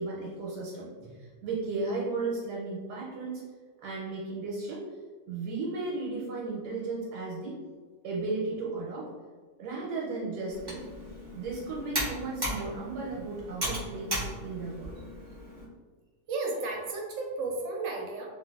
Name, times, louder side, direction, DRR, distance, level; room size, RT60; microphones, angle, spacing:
voice 1, 0.0-3.4 3.8-4.8 5.3-7.6 8.0-9.1 9.6-10.8 11.3-14.9, right 3 dB, 85° right, -4 dB, 1.2 m, -35 dB
Computer keyboard, 10.5-15.6, right 1 dB, 30° right, 0.4 m, -36 dB
voice 2, 16.3-18.3, right 3 dB, 65° right, -1 dB, 0.8 m, -33 dB
3.1 x 2.5 x 2.2 m, 1.5 s
omnidirectional pair, 1.7 m